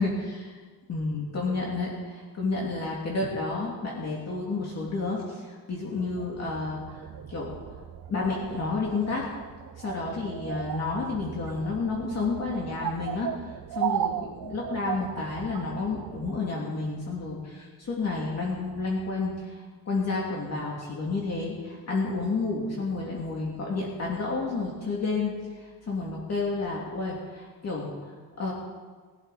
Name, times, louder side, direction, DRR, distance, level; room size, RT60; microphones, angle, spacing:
voice 1, 0.0-0.5 0.9-7.8 8.1-9.3 9.8-13.3 13.7-28.5, left 3 dB, 40° left, -3 dB, 2.7 m, -31 dB
sound 1, 6.0-16.4, right 11 dB, 55° right, 0.7 m, -36 dB
21.5 x 12.0 x 4.2 m, 1.5 s
cardioid pair, 150°, 40 cm